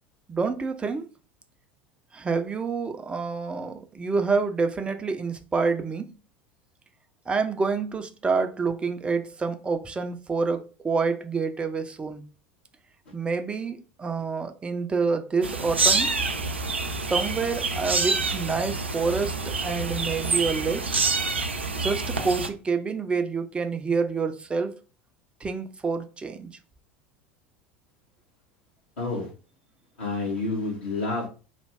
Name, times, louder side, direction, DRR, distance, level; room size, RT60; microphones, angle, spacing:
voice 1, 0.3-1.1 2.1-6.2 7.3-12.2 13.1-16.2 17.1-20.9 21.8-24.8 25.4-26.5, right 4 dB, 15° right, 0.5 m, -27 dB
sound 1, 15.4-22.5, right 4 dB, 80° right, 0.4 m, -27 dB
voice 2, 16.6-16.9 29.0-29.3 30.0-31.3, left 3 dB, 65° left, 1.5 m, -29 dB
3.2 x 2.3 x 3.4 m
figure-of-eight pair, 75°, 6 cm